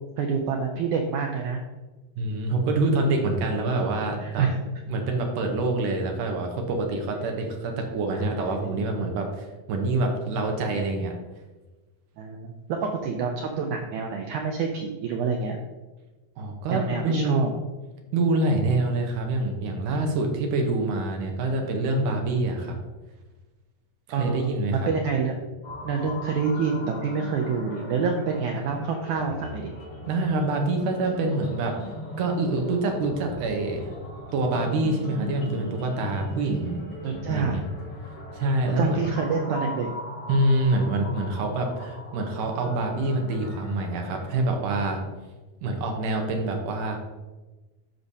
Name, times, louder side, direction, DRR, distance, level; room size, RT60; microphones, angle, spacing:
voice 1, 0.2-1.6 4.2-4.6 8.1-9.0 12.2-15.6 16.7-17.6 24.1-25.5 25.8-29.7 37.0-37.6 38.6-39.9, right 5 dB, 85° right, 2 dB, 1.7 m, -27 dB
voice 2, 2.2-4.5 4.9-11.1 16.4-17.4 18.1-22.7 24.1-24.9 30.0-31.7 32.2-33.9 34.3-36.8 37.3-37.6 38.3-39.0 40.3-45.0 45.6-47.0, right 2 dB, 70° right, 2 dB, 2.3 m, -26 dB
sound 1, 25.6-44.5, left 1 dB, 50° left, 2.0 m, -39 dB
13.5 x 5.1 x 2.8 m, 1.2 s
omnidirectional pair, 4.3 m